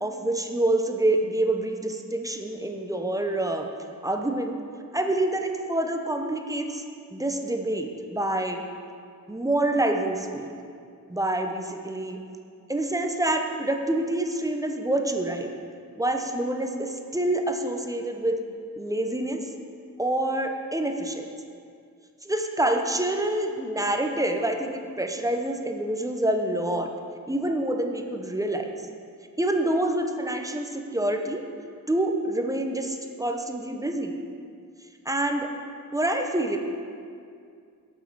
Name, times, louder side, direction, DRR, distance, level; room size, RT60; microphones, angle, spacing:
voice 1, 0.0-3.7 4.0-4.6 4.9-6.8 7.1-8.6 9.3-10.5 11.1-12.2 12.7-15.5 16.0-18.4 18.8-19.5 20.0-21.2 22.2-26.9 27.3-28.7 29.4-31.4 31.9-34.1 35.1-35.5 35.9-36.6, right 1 dB, 10° right, 4 dB, 0.6 m, -27 dB
7.5 x 6.2 x 5.4 m, 2.3 s
wide cardioid pair, 110°, 33 cm